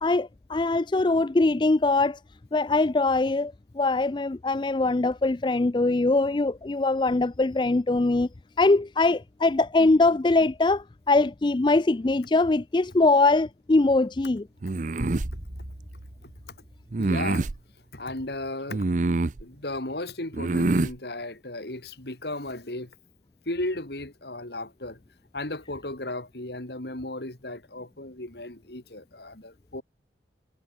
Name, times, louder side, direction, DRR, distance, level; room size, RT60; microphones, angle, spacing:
voice 1, 0.0-2.2 2.5-8.3 8.6-14.5, left 2 dB, 25° left, 0.4 m, -22 dB
sound 1, 14.6-15.3 16.9-17.6 18.7-19.4 20.3-20.9, right 2 dB, 45° right, 0.6 m, -25 dB
sound 2, 15.0-17.5, right 1 dB, 70° right, 3.2 m, -38 dB
voice 2, 17.0-17.5 17.9-18.9 19.4-22.9 23.5-25.0 25.3-29.8, left 2 dB, 65° left, 3.0 m, -35 dB
head